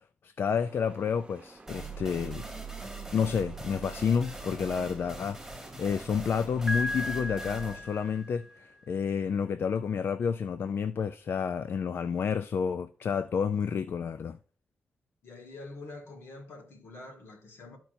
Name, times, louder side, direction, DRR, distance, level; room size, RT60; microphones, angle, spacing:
voice 1, 0.2-2.4 3.1-5.4 5.8-14.4, left 6 dB, 60° left, 0.3 m, -30 dB
sound 1, 0.6-7.5, right 2 dB, 25° right, 1.0 m, -53 dB
sound 2, 1.7-9.1, right 3 dB, 5° right, 1.9 m, -42 dB
Piano, 6.7-8.6, left 1 dB, 15° left, 1.1 m, -35 dB
voice 2, 15.2-17.8, left 2 dB, 80° left, 2.0 m, -46 dB
13.0 x 4.4 x 2.7 m
cardioid pair, 75°, 4 cm